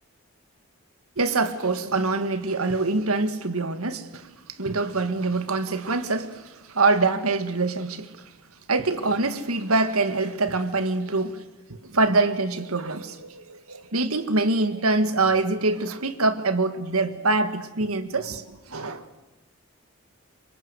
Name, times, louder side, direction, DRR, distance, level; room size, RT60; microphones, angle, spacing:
voice 1, 1.2-8.3 8.7-11.4 11.7-19.1, right 3 dB, 85° right, 1.9 m, -25 dB
27.0 x 25.0 x 8.1 m
head